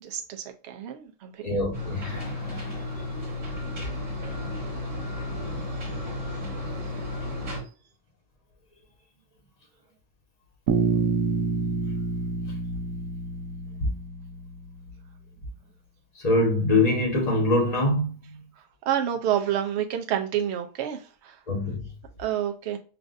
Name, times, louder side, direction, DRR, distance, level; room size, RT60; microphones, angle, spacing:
voice 1, 0.0-1.3 18.9-21.4 22.2-22.8, right 10 dB, 70° right, 0.6 m, -28 dB
voice 2, 1.4-2.8 4.9-6.0 16.2-18.4 21.5-21.8, left 2 dB, 30° left, 1.0 m, -25 dB
sound 1, 1.7-7.6, left 2 dB, 45° right, 1.7 m, -33 dB
Bass guitar, 10.7-14.7, right 4 dB, 85° right, 1.2 m, -28 dB
5.8 x 2.5 x 2.5 m
omnidirectional pair, 1.7 m